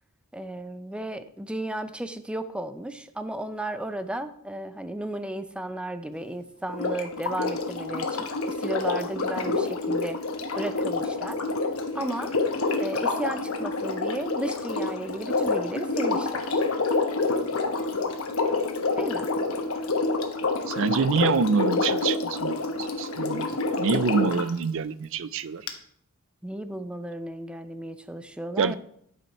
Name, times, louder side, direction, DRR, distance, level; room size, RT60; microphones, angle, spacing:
voice 1, 0.3-10.2 10.5-11.4 11.9-12.3 12.8-16.6 19.0-19.3 26.4-28.7, right 1 dB, 5° right, 0.5 m, -34 dB
Sink (filling or washing), 6.7-24.5 25.7-25.8, left 3 dB, 75° left, 1.1 m, -28 dB
voice 2, 20.7-25.7 28.6-28.7, right 5 dB, 65° right, 0.4 m, -26 dB
11.0 x 5.6 x 4.2 m
head